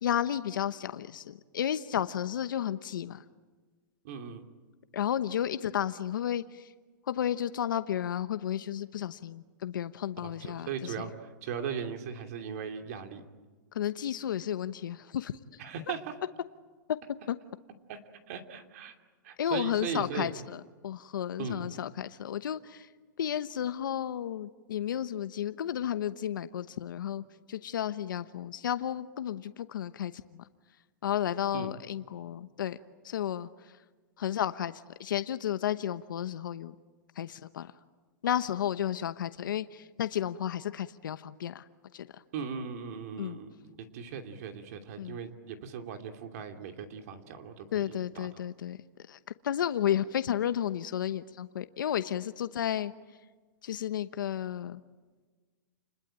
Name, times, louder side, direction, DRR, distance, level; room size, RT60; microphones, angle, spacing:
voice 1, 0.0-3.2 4.9-6.7 7.1-11.1 13.7-15.3 16.9-17.0 17.3-17.4 19.4-22.9 23.2-30.4 31.0-32.8 33.0-33.8 34.2-36.7 37.2-37.7 38.2-41.6 41.9-42.1 43.2-43.4 45.0-45.2 47.7-48.8 49.1-49.2 49.4-52.9 53.6-54.8, left 10 dB, 80° left, 12 dB, 1.0 m, -32 dB
voice 2, 4.0-4.4 10.2-13.2 15.6-16.1 17.9-18.0 18.3-18.9 19.2-20.3 21.4-21.7 31.5-31.7 42.3-43.5 43.9-48.3, right 6 dB, 50° right, 6 dB, 2.8 m, -38 dB
29.5 x 21.5 x 9.1 m, 1.4 s
hypercardioid pair, 160°, 11 cm